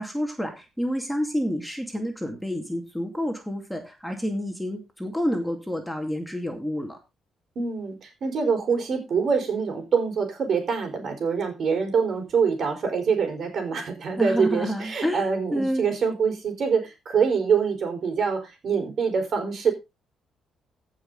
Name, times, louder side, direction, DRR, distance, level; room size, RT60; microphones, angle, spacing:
voice 1, 0.0-7.0 14.2-15.9, equal, 5° left, 4 dB, 2.4 m, -29 dB
voice 2, 7.5-19.7, right 6 dB, 55° right, 5 dB, 4.5 m, -25 dB
15.0 x 5.9 x 4.0 m, 0.25 s
cardioid pair, 90°, 0 cm